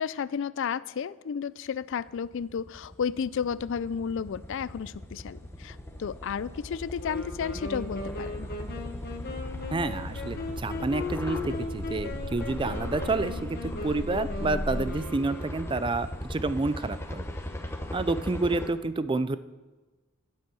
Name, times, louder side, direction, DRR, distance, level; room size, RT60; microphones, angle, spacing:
voice 1, 0.0-8.5, left 7 dB, 60° left, 18 dB, 0.4 m, -32 dB
sound 1, 1.9-18.7, left 1 dB, 10° left, 1.0 m, -38 dB
Wind instrument woodwind instrument, 7.0-16.0, left 3 dB, 45° left, 1.4 m, -38 dB
sound 2, 9.4-14.8, left 2 dB, 80° left, 1.2 m, -39 dB
voice 2, 9.7-17.3 17.9-19.4, right 3 dB, 25° right, 14 dB, 0.4 m, -29 dB
10.5 x 10.0 x 6.9 m, 1.3 s
head